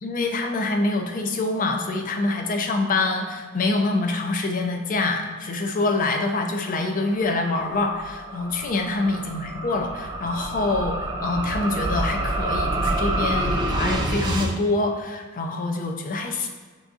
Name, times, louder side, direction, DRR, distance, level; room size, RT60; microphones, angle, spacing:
voice 1, 0.0-16.5, left 2 dB, 40° left, 4 dB, 0.5 m, -25 dB
sound 1, 6.7-14.5, right 1 dB, 20° right, 0.4 m, -28 dB
5.3 x 3.5 x 2.5 m, 1.4 s
head